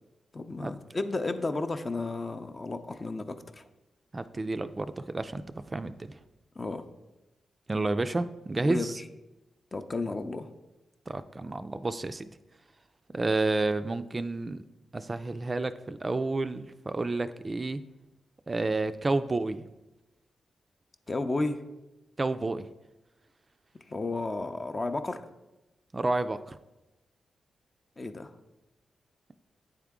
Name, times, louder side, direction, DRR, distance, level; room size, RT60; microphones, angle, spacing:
voice 1, 0.3-3.6 6.6-6.8 8.6-8.9 9.7-10.5 21.1-21.6 23.9-25.2 28.0-28.3, left 2 dB, 35° left, 8 dB, 0.5 m, -32 dB
voice 2, 4.1-6.2 7.7-9.0 11.1-12.3 13.1-14.6 14.9-17.8 18.5-19.6 22.2-22.7 25.9-26.6, right 2 dB, 35° right, 11 dB, 0.3 m, -30 dB
8.8 x 3.6 x 3.5 m, 1.0 s
supercardioid pair, 50°, 0 cm